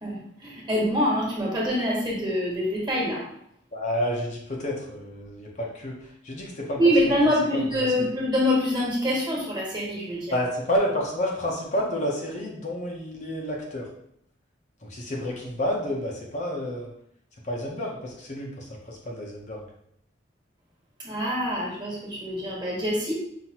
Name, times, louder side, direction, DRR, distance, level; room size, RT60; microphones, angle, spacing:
voice 1, 0.0-3.2 6.8-10.3 21.0-23.1, equal, 25° right, -5 dB, 1.4 m, -25 dB
voice 2, 3.7-6.8 7.5-8.1 10.3-13.9 14.8-16.9 17.4-19.6, equal, 40° left, -2 dB, 0.7 m, -30 dB
5.6 x 2.7 x 2.9 m, 0.72 s
head